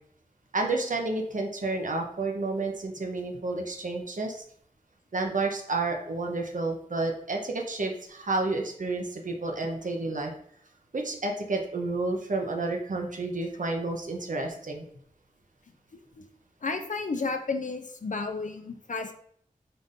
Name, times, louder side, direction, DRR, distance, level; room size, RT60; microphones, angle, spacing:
voice 1, 0.5-4.4 5.1-10.3 10.9-14.8, right 3 dB, 60° right, 2 dB, 0.8 m, -30 dB
voice 2, 16.6-19.1, left 4 dB, 60° left, 6 dB, 0.5 m, -32 dB
3.9 x 2.5 x 3.6 m, 0.63 s
cardioid pair, 45°, 15 cm